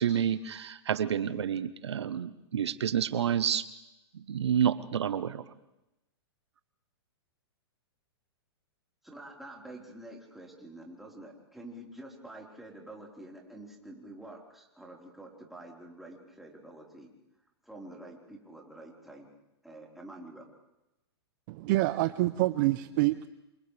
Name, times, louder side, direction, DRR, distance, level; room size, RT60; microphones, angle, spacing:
voice 1, 0.0-3.7 4.1-5.4, right 9 dB, 80° right, 14 dB, 0.9 m, -29 dB
voice 2, 9.0-17.1 17.6-19.3 19.6-20.5, right 1 dB, ahead, -2 dB, 4.3 m, -47 dB
voice 3, 21.5-23.3, right 18 dB, 45° right, 13 dB, 0.7 m, -27 dB
28.0 x 27.5 x 3.4 m, 0.93 s
hypercardioid pair, 125°, 14 cm